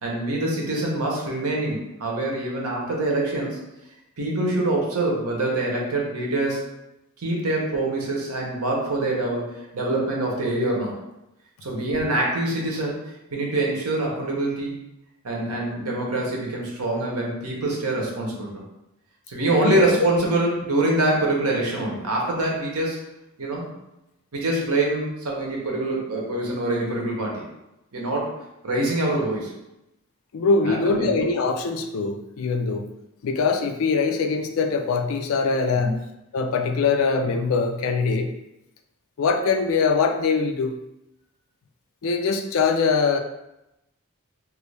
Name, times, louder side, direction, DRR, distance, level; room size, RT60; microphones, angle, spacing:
voice 1, 0.0-3.6 4.2-6.6 7.2-11.0 11.6-13.0 13.3-14.8 15.2-18.5 19.3-23.0 23.4-23.7 24.3-27.4 27.9-28.3 28.6-29.5 30.6-31.1 35.8-35.9, right 2 dB, 90° right, -2 dB, 0.9 m, -25 dB
voice 2, 30.3-32.9 33.2-36.0 36.3-38.3 39.2-40.8 42.0-43.2, left 4 dB, 70° left, 5 dB, 0.4 m, -22 dB
3.0 x 2.5 x 3.2 m, 0.90 s
head